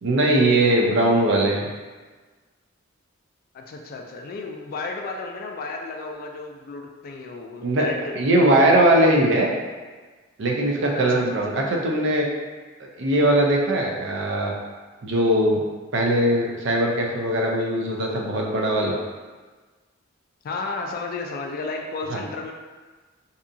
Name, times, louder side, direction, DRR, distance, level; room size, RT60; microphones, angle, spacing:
voice 1, 0.0-1.7 7.6-7.9 8.1-9.5 10.4-12.3 12.8-14.5 15.0-15.6 15.9-19.0 22.1-22.2, right 1 dB, 65° right, -1 dB, 0.5 m, -20 dB
voice 2, 3.5-8.2 10.9-11.4 20.4-22.5, left 3 dB, 45° left, 2 dB, 0.3 m, -33 dB
2.7 x 2.3 x 2.5 m, 1.4 s
head